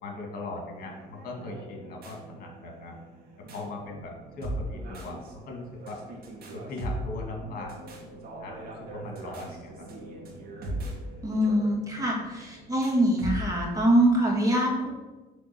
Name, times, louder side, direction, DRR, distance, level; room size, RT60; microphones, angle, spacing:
voice 1, 0.0-3.0 3.5-6.0 6.5-7.9 8.4-9.8 10.7-11.0, left 2 dB, 60° left, 0 dB, 2.0 m, -39 dB
sound 1, 0.7-13.8, right 1 dB, 65° right, 2.0 m, -40 dB
voice 2, 11.2-14.9, right 1 dB, 20° right, -2 dB, 2.0 m, -24 dB
7.7 x 3.6 x 6.0 m, 1.2 s
cardioid pair, 110°, 17 cm